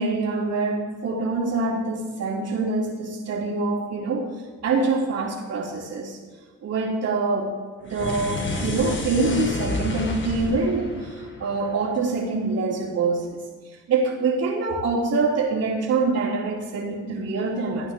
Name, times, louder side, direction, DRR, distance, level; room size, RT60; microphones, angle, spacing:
voice 1, 0.0-4.3 4.6-6.2 6.6-7.5 7.8-17.9, right 3 dB, 60° right, -10 dB, 2.8 m, -25 dB
sound 1, 7.8-12.3, left 2 dB, 40° left, 1.8 m, -30 dB
16.0 x 9.4 x 3.6 m, 1.4 s
cardioid pair, 90°, 30 cm